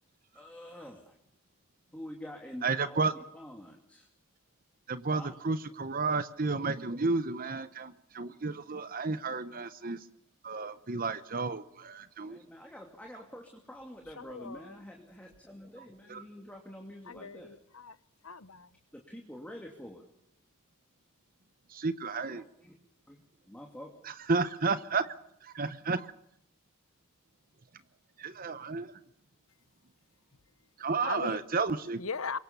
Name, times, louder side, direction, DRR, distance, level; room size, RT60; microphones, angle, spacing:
voice 1, 0.3-1.2 1.9-4.1 5.1-5.4 12.3-17.5 18.9-20.0 22.3-22.7 23.1-23.2 23.5-23.9 24.7-24.8, left 1 dB, 5° left, 2.7 m, -47 dB
voice 2, 2.6-3.1 4.9-10.1 10.4-12.4 16.1-16.2 21.8-22.4 24.3-25.1 25.4-26.1 28.2-28.9 30.8-32.0, right 4 dB, 40° right, 0.9 m, -32 dB
voice 3, 14.2-14.7 17.1-18.0 18.2-18.7 31.0-31.4 32.0-32.4, left 5 dB, 70° left, 1.1 m, -39 dB
27.0 x 23.0 x 7.0 m
head